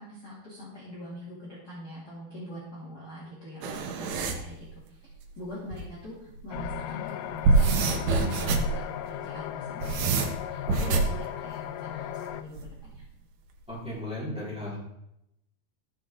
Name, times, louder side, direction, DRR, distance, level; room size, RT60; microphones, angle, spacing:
voice 1, 0.0-13.0, left 1 dB, 30° left, -8 dB, 2.8 m, -43 dB
sound 1, 3.6-4.4 5.7-5.8 6.3-6.7 7.2-8.8 9.5-11.2 12.6-13.0, right 3 dB, 90° right, 3.1 m, -25 dB
sound 2, 6.5-12.4, left 12 dB, 85° left, 1.9 m, -37 dB
voice 2, 10.7-11.0 13.7-14.8, left 1 dB, ahead, -8 dB, 3.8 m, -36 dB
14.0 x 7.1 x 3.8 m, 0.82 s
omnidirectional pair, 4.4 m